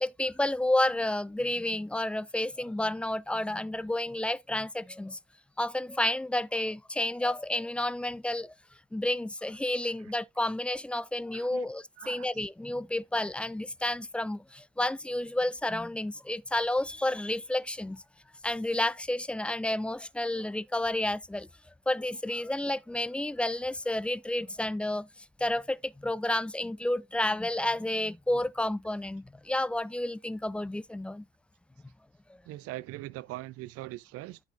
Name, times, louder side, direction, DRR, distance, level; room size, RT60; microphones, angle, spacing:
voice 1, 0.0-5.2 5.6-8.5 8.9-18.0 18.4-21.5 21.9-25.1 25.4-31.2, left 1 dB, 5° left, 0.4 m, -30 dB
voice 2, 11.3-11.7 12.0-12.3 32.5-34.4, right 17 dB, 50° right, 0.7 m, -41 dB
13.0 x 5.6 x 2.6 m
figure-of-eight pair, 50°, 30 cm